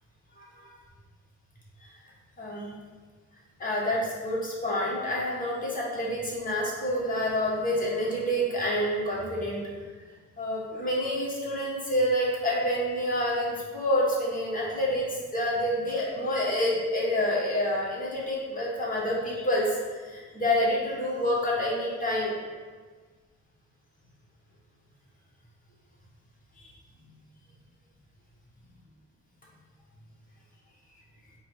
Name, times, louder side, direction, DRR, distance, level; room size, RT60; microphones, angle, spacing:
voice 1, 2.4-2.7 3.6-9.6 10.4-15.1 15.3-22.3 26.6-26.7, left 1 dB, 25° left, -5 dB, 1.3 m, -28 dB
4.8 x 2.3 x 4.2 m, 1.5 s
cardioid pair, 90°, 30 cm